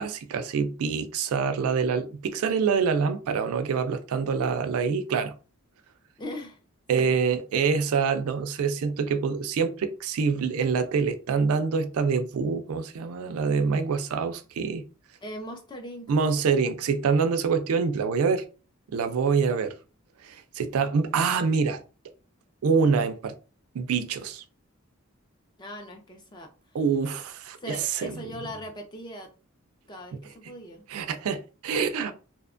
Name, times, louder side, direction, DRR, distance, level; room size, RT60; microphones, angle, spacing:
voice 1, 0.0-5.3 6.9-14.8 16.1-18.4 18.9-19.7 20.2-21.8 22.6-23.3 23.7-24.4 26.7-28.2 30.9-32.1, right 5 dB, 85° right, 0.4 m, -26 dB
voice 2, 6.2-6.6 6.9-7.1 15.2-16.3 25.6-26.8 27.6-29.3 29.9-30.9, equal, 20° left, 0.4 m, -40 dB
2.7 x 2.2 x 2.4 m
head